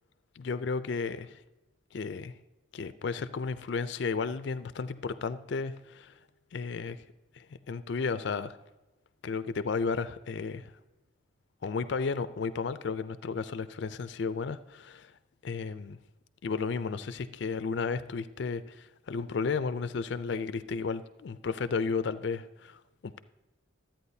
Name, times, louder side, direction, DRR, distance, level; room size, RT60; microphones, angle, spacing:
voice 1, 0.4-1.4 1.9-2.3 2.7-6.1 6.5-7.0 7.3-8.6 9.2-10.7 11.6-15.1 15.4-16.0 16.4-23.2, left 5 dB, 60° left, 0.4 m, -33 dB
13.0 x 8.9 x 2.7 m
head